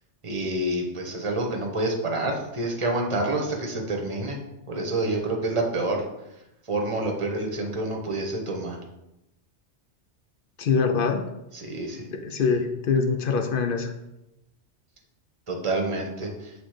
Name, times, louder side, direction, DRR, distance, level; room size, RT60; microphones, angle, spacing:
voice 1, 0.2-4.4 4.7-6.0 6.7-8.8 11.5-12.0 15.5-16.5, right 2 dB, 30° right, 1 dB, 1.0 m, -28 dB
voice 2, 10.6-11.3 12.1-13.9, left 5 dB, 55° left, 5 dB, 0.7 m, -24 dB
6.0 x 3.7 x 5.0 m, 0.92 s
omnidirectional pair, 1.2 m